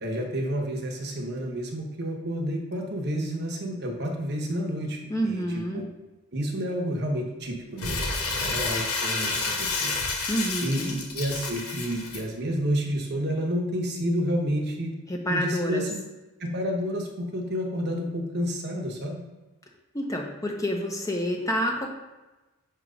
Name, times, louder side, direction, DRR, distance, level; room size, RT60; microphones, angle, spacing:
voice 1, 0.0-5.8 6.3-8.1 8.4-9.9 10.6-14.9 15.3-16.0 16.4-19.2, equal, 45° right, 2 dB, 0.9 m, -30 dB
voice 2, 5.1-5.8 10.3-11.0 15.1-15.8 19.9-21.9, equal, 15° left, 1 dB, 0.6 m, -28 dB
Crumpling crinkling, 7.8-12.2, left 3 dB, 85° left, 1.1 m, -29 dB
6.6 x 2.9 x 5.0 m, 1.1 s
head